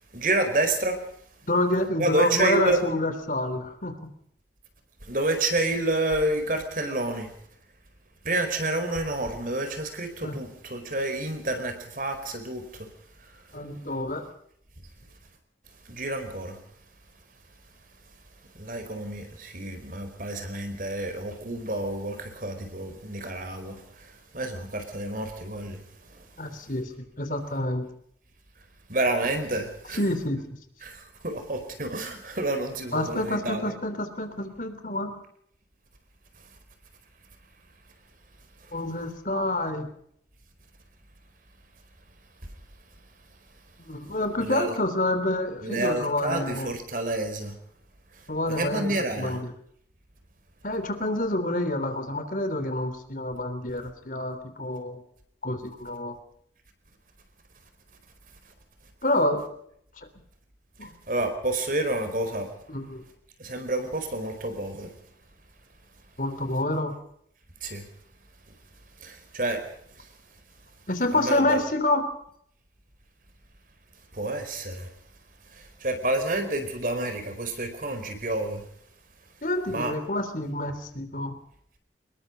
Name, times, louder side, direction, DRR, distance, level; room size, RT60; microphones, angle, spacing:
voice 1, 0.1-1.0 2.0-2.8 5.1-7.3 8.2-12.6 15.9-16.5 18.6-23.8 24.3-25.8 28.9-30.0 30.8-31.0 31.2-33.6 44.4-44.7 45.6-47.5 48.6-49.4 61.1-62.5 63.4-64.9 67.6-67.8 69.0-69.6 71.1-71.6 74.1-74.9 75.8-78.6 79.7-79.9, right 2 dB, 50° right, 7 dB, 4.6 m, -29 dB
voice 2, 1.5-3.9 10.2-10.4 13.5-14.3 26.4-27.8 29.9-30.4 32.9-35.1 38.7-39.9 43.8-46.7 48.3-49.5 50.6-55.0 55.4-56.1 59.0-59.4 60.8-60.9 62.7-63.0 66.2-66.9 70.9-72.0 79.4-81.4, left 1 dB, 50° left, 9 dB, 3.4 m, -28 dB
25.5 x 21.0 x 5.2 m, 0.67 s
head